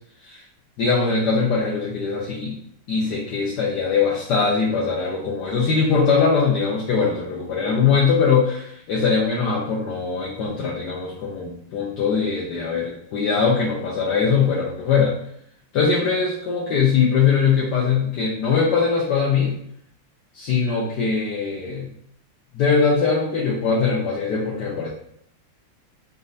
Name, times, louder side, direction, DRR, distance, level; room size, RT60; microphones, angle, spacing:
voice 1, 0.8-2.6 2.9-15.1 15.7-19.5 20.3-21.9 22.5-24.9, left 5 dB, 70° left, -4 dB, 1.3 m, -21 dB
4.2 x 3.9 x 2.6 m, 0.68 s
omnidirectional pair, 2.0 m